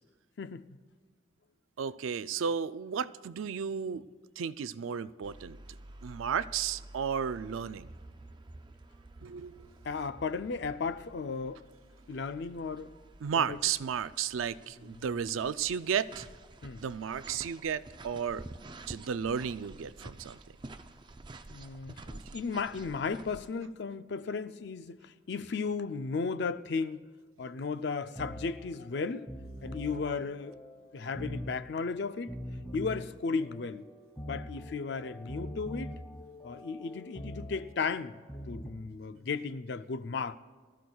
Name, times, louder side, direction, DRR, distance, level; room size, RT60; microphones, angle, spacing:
voice 1, 0.4-0.8 9.8-11.6 12.1-12.9 13.4-13.6 14.9-15.0 16.6-16.8 21.5-27.0 27.4-29.3 29.6-30.6 30.9-32.3 32.7-33.8 34.3-35.9 36.4-38.2 38.5-40.4, left 4 dB, 60° left, 0.4 m, -35 dB
voice 2, 1.8-4.0 4.4-5.6 6.0-7.9 9.2-9.7 13.2-16.3 16.8-18.5 18.9-20.4, right 7 dB, 85° right, 0.4 m, -33 dB
sound 1, 5.2-23.5, right 2 dB, 25° right, 0.4 m, -50 dB
sound 2, 27.9-38.7, equal, 20° left, 2.4 m, -44 dB
23.5 x 14.0 x 2.3 m
head